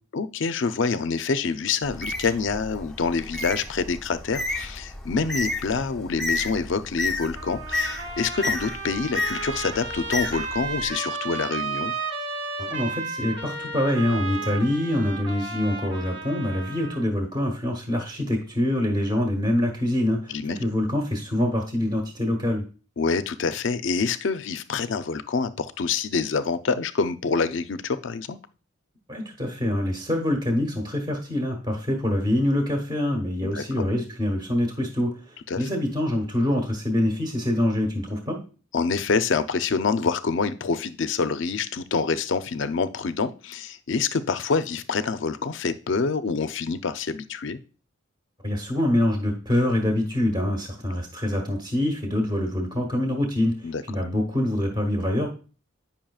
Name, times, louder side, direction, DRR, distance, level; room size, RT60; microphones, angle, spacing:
voice 1, 0.1-11.9 20.3-20.6 23.0-28.4 33.4-33.9 35.5-35.7 38.7-47.6 53.6-53.8, left 4 dB, 60° left, 11 dB, 0.5 m, -26 dB
Bird, 1.8-10.9, left 2 dB, 5° left, 0.6 m, -32 dB
Trumpet, 7.4-17.0, right 4 dB, 55° right, 1.0 m, -33 dB
voice 2, 12.6-22.6 29.1-38.4 48.4-55.3, left 1 dB, 20° right, 2 dB, 1.1 m, -25 dB
8.9 x 5.6 x 2.3 m, 0.35 s
head